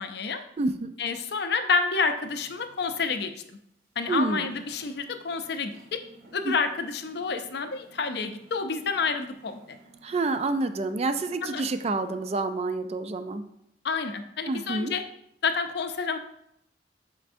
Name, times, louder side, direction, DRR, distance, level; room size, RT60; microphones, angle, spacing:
voice 1, 0.0-0.4 1.0-3.3 4.0-6.0 6.3-9.8 11.4-11.6 13.8-15.0 15.4-16.2, left 5 dB, 60° left, 8 dB, 0.5 m, -29 dB
voice 2, 0.6-0.9 4.1-4.5 6.4-6.5 10.0-13.4 14.5-14.9, right 2 dB, 35° right, 10 dB, 0.3 m, -28 dB
sound 1, 2.2-3.2 3.5-3.6 4.0-4.1 4.5-12.2, right 2 dB, 55° right, 2.2 m, -55 dB
7.5 x 5.2 x 2.6 m, 0.76 s
head